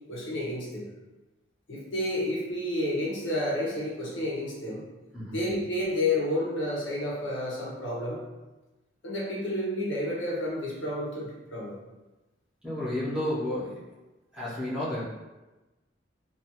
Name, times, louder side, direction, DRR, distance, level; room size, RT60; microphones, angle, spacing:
voice 1, 0.1-0.9 1.7-4.8 5.3-8.2 9.0-11.8, left 1 dB, 75° left, -4 dB, 0.7 m, -30 dB
voice 2, 12.6-13.8 14.3-15.0, left 1 dB, 5° right, -10 dB, 0.7 m, -31 dB
2.4 x 2.3 x 2.8 m, 1.1 s
head